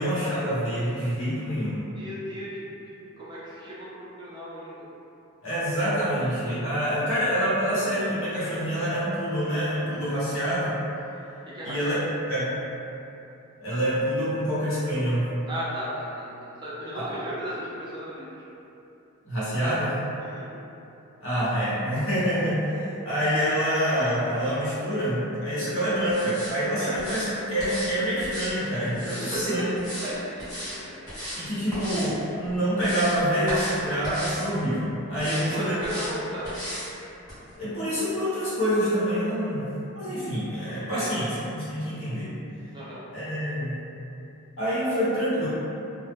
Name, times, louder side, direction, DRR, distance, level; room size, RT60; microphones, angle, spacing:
voice 1, 0.0-1.9 5.4-10.8 11.6-12.5 13.6-15.3 16.9-17.1 19.2-20.0 21.2-29.6 31.3-36.0 37.6-42.3 43.1-43.7 44.6-45.5, equal, 65° left, -11 dB, 1.0 m, -26 dB
voice 2, 2.0-2.7 3.2-4.8 11.5-12.0 15.5-18.3 20.2-20.5 26.8-26.9 29.1-29.7 30.0-31.5 35.2-36.5 40.9-41.1 42.7-43.0, equal, 20° right, -9 dB, 0.4 m, -35 dB
sound 1, 26.1-26.5 27.0-27.3 27.6-27.9 28.2-29.3 29.8-30.1 30.4-30.8 31.1-31.4 31.7-32.1 32.5-33.2 33.5-33.8 34.0-34.5 35.1-35.4 35.8-36.1 36.4-36.9 37.3-37.4, equal, 15° left, 0.9 m, -35 dB
2.1 x 2.0 x 3.3 m, 2.9 s
head